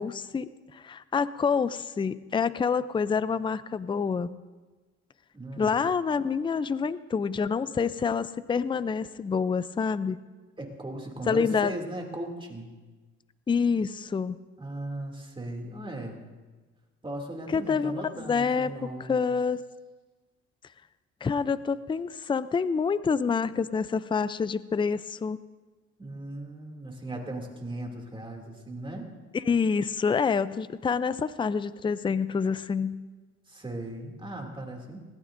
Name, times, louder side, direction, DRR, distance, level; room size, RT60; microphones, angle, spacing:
voice 1, 0.0-4.4 5.6-10.2 11.3-11.7 13.5-14.4 17.5-19.6 21.2-25.4 29.3-33.0, left 5 dB, 15° left, 15 dB, 0.4 m, -27 dB
voice 2, 5.3-5.8 10.6-12.7 14.6-16.2 17.0-19.3 26.0-29.1 33.5-35.0, right 1 dB, 15° right, 1 dB, 2.6 m, -37 dB
19.5 x 18.0 x 2.6 m, 1.3 s
cardioid pair, 90°, 30 cm